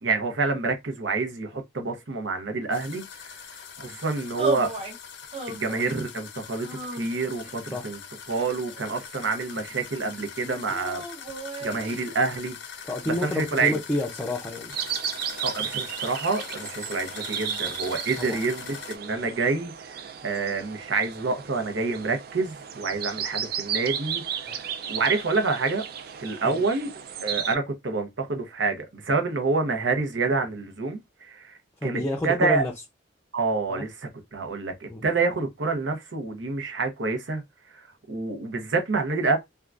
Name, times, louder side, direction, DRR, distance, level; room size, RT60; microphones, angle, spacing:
voice 1, 0.0-4.7 5.5-8.0 8.3-11.0 11.6-13.7 15.4-25.8 26.2-26.9 27.2-32.6 33.3-33.9 34.3-37.4 37.7-37.8 38.1-39.4, right 3 dB, 80° right, 0.8 m, -28 dB
sound 1, 2.7-19.0, left 7 dB, 70° left, 0.6 m, -42 dB
sound 2, 4.4-5.0 5.3-6.0 6.6-7.5 8.3-9.3 10.7-12.0, right 3 dB, 30° right, 0.7 m, -34 dB
voice 2, 12.8-14.7 18.2-18.4 24.5-24.6 26.4-26.6 31.8-32.7 33.7-33.8 34.9-35.1, left 1 dB, 15° left, 0.5 m, -29 dB
sound 3, 14.7-27.6, right 8 dB, 55° right, 0.4 m, -34 dB
3.5 x 2.3 x 2.4 m
head